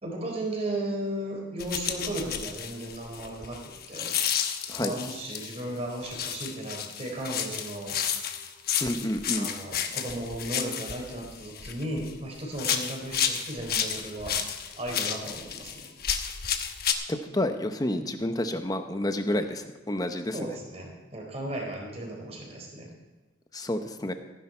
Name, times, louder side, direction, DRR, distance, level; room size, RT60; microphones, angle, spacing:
voice 1, 0.0-4.1 4.8-8.3 9.3-15.9 20.3-22.9, right 1 dB, 30° right, -1 dB, 3.9 m, -35 dB
sound 1, 1.6-5.6 6.0-12.2 12.5-16.9, left 8 dB, 50° left, 1.0 m, -31 dB
voice 2, 8.8-9.5 17.1-20.6 23.5-24.1, left 1 dB, 20° left, 7 dB, 0.8 m, -29 dB
15.0 x 10.5 x 4.4 m, 1.2 s
head